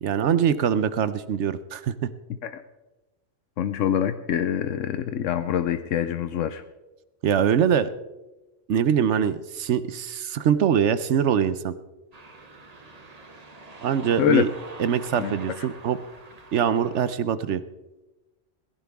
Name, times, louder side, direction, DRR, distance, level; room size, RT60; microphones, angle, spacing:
voice 1, 0.0-2.1 7.2-7.9 8.7-11.7 13.8-14.5 14.8-16.0 16.5-17.6, right 8 dB, 70° right, 14 dB, 1.0 m, -23 dB
voice 2, 3.6-6.6 14.2-14.4 15.2-15.3, left 9 dB, 85° left, 10 dB, 1.1 m, -25 dB
sound 1, 12.1-17.2, right 3 dB, 35° right, 1.3 m, -45 dB
18.5 x 15.5 x 3.5 m, 1.1 s
omnidirectional pair, 1.3 m